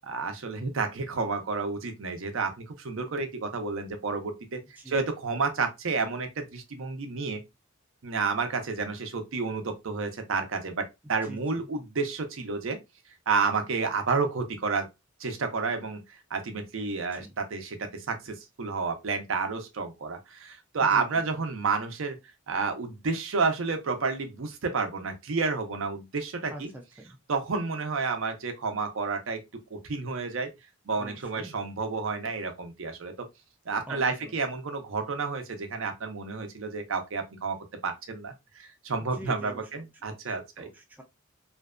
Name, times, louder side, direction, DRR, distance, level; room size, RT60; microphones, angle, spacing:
voice 1, 0.0-4.6 4.9-7.4 8.0-12.8 13.3-14.9 15.2-22.2 22.5-26.7 27.3-29.4 29.7-30.5 30.9-33.1 33.7-37.6 37.8-40.7, right 4 dB, 70° right, 0.5 m, -30 dB
voice 2, 11.2-11.6 17.1-17.3 20.9-21.2 26.5-27.2 31.0-31.5 33.9-34.3 39.1-41.0, right 1 dB, 10° right, 0.3 m, -45 dB
2.5 x 2.2 x 2.3 m
head